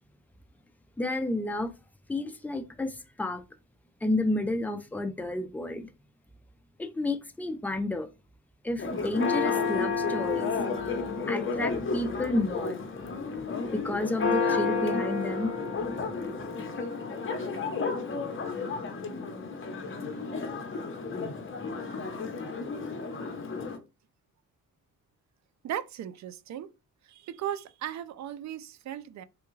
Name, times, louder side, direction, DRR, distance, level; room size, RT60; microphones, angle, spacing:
voice 1, 1.0-1.7 2.1-3.4 4.0-5.9 6.8-8.1 8.6-10.5 11.3-12.8 13.7-15.5, left 2 dB, 5° left, 0.4 m, -31 dB
Church bell, 8.8-23.8, left 4 dB, 35° left, 0.9 m, -31 dB
voice 2, 25.6-26.7 27.0-29.2, right 10 dB, 55° right, 0.4 m, -37 dB
3.4 x 2.2 x 3.1 m
cardioid pair, 85°, 34 cm